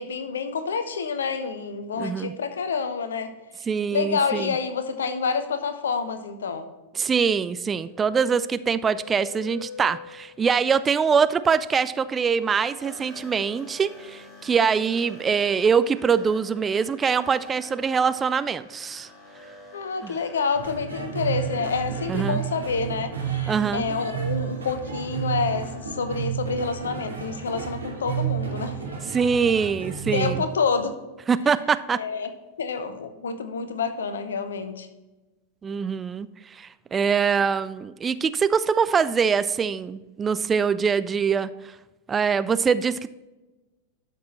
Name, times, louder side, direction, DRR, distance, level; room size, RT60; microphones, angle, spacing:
voice 1, 0.0-3.3 3.9-6.7 19.7-28.8 30.1-31.0 31.9-32.3 32.6-34.9, left 5 dB, 65° left, 9 dB, 0.9 m, -28 dB
voice 2, 2.0-2.3 3.7-4.5 7.0-19.1 20.0-20.1 22.1-22.4 23.5-23.8 29.0-30.4 31.3-32.0 35.6-41.5 42.1-43.1, right 6 dB, 20° right, 14 dB, 0.3 m, -23 dB
sound 1, 7.1-10.4 12.0-26.2, left 3 dB, 20° left, 3.5 m, -47 dB
sound 2, 20.5-30.4, right 8 dB, 75° right, 2.9 m, -31 dB
12.0 x 6.1 x 4.2 m, 1.1 s
figure-of-eight pair, 90°, 0 cm